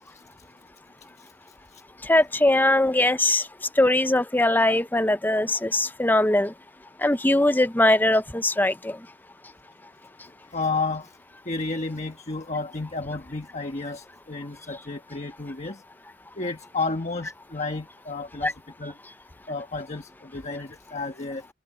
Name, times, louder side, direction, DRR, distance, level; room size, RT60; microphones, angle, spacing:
voice 1, 2.1-3.4 3.8-6.5 7.0-9.0 18.4-18.5, left 1 dB, 10° left, 0.6 m, -21 dB
voice 2, 10.5-11.2 11.4-15.8 16.4-19.0 19.5-21.5, left 3 dB, 35° left, 1.3 m, -32 dB
head